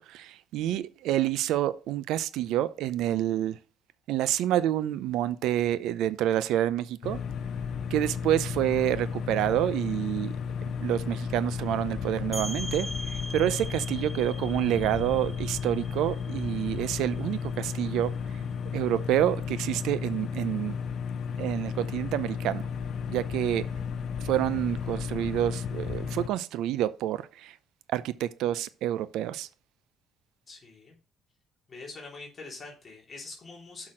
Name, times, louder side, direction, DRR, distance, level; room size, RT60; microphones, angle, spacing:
voice 1, 0.0-3.6 4.1-7.2 7.9-10.3 10.8-18.2 18.7-20.8 21.4-22.7 23.1-23.7 24.2-27.5 27.9-29.5, right 12 dB, 80° right, 0.6 m, -28 dB
sound 1, 7.0-26.3, left 6 dB, 55° left, 0.8 m, -34 dB
sound 2, 12.3-17.8, equal, 5° right, 0.7 m, -41 dB
voice 2, 30.5-30.9 31.7-33.9, left 3 dB, 30° left, 3.3 m, -44 dB
6.1 x 5.9 x 6.3 m
cardioid pair, 125°, 0 cm